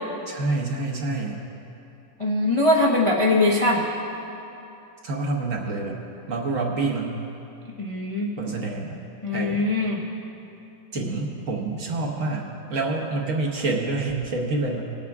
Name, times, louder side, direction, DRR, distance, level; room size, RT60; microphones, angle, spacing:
voice 1, 0.3-1.4 5.0-6.0 6.3-7.3 8.4-9.0 9.3-9.7 10.9-14.8, right 3 dB, 50° right, -1 dB, 1.3 m, -27 dB
voice 2, 2.2-3.9 7.8-8.3 9.2-10.0 11.0-11.1, left 2 dB, 45° left, -3 dB, 0.4 m, -21 dB
19.5 x 8.3 x 3.6 m, 3.0 s
omnidirectional pair, 2.1 m